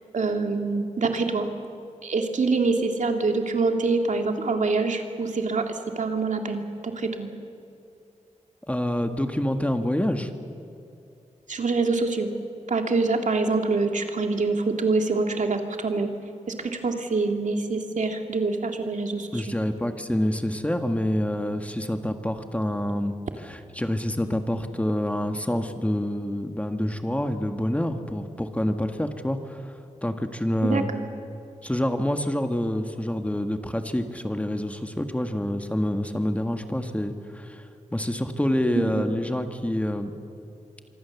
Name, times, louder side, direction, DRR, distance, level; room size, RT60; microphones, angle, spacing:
voice 1, 0.1-1.5 2.0-7.3 11.5-12.3 12.7-16.1 16.6-19.4 30.7-31.0 38.8-39.1, right 3 dB, 75° right, 4 dB, 2.2 m, -25 dB
voice 2, 8.7-10.3 19.3-30.9 31.6-40.2, left 1 dB, 10° left, 6 dB, 1.6 m, -27 dB
25.5 x 24.5 x 7.1 m, 2.6 s
wide cardioid pair, 90°, 13 cm